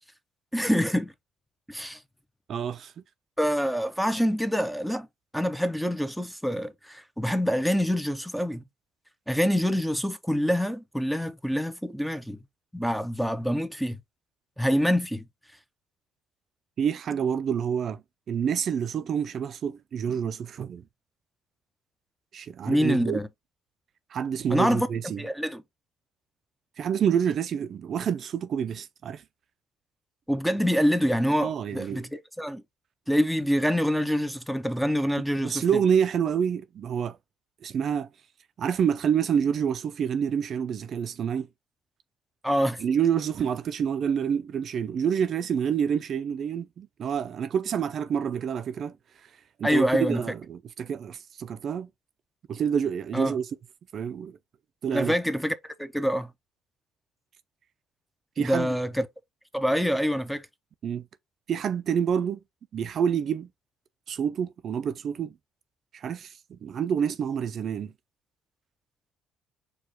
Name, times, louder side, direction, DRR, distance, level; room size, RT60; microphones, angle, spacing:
voice 1, 0.5-1.1 1.7-2.0 3.4-5.1 5.3-8.6 9.3-12.4 12.7-14.0 14.6-15.2 22.7-23.3 24.5-24.9 25.2-25.6 30.3-32.6 33.1-35.6 42.4-42.8 49.6-50.2 53.1-53.4 54.9-56.3 58.4-59.1 59.5-60.5, equal, ahead, 0.5 m, -26 dB
voice 2, 2.5-2.9 16.8-20.8 22.3-23.2 24.1-25.2 26.8-29.2 31.4-32.1 35.4-37.2 37.6-38.1 38.6-41.5 42.8-49.0 49.6-51.9 52.5-53.5 53.9-54.4 54.8-55.1 58.4-58.7 60.8-61.0 61.5-62.4 62.7-63.5 64.1-65.3 65.9-67.9, right 8 dB, 50° right, 0.4 m, -28 dB
4.7 x 2.3 x 4.2 m
cardioid pair, 120°, 0 cm